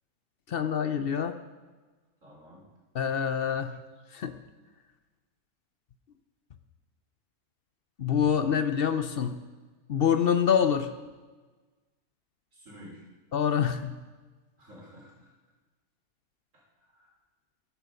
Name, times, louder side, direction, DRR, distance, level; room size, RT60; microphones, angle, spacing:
voice 1, 0.5-1.3 2.9-3.8 4.1-4.3 8.0-9.4 9.9-10.9 13.3-14.0, left 8 dB, 55° left, 10 dB, 0.8 m, -26 dB
voice 2, 2.2-2.6 12.5-13.0 14.6-15.3 16.5-17.1, equal, 65° right, -4 dB, 4.0 m, -51 dB
13.5 x 11.0 x 5.1 m, 1.3 s
omnidirectional pair, 1.4 m